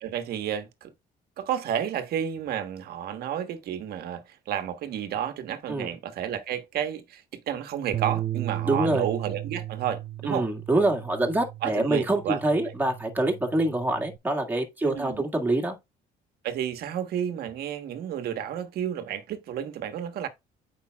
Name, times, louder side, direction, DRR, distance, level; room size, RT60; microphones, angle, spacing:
voice 1, 0.0-0.9 1.4-10.5 11.6-12.4 14.8-15.2 16.4-20.3, right 9 dB, 65° right, 1.3 m, -31 dB
Bass guitar, 7.9-14.2, right 13 dB, 35° right, 0.5 m, -35 dB
voice 2, 8.7-9.0 10.3-15.8, right 2 dB, 10° right, 1.8 m, -25 dB
8.7 x 5.2 x 2.3 m
cardioid pair, 110°, 17 cm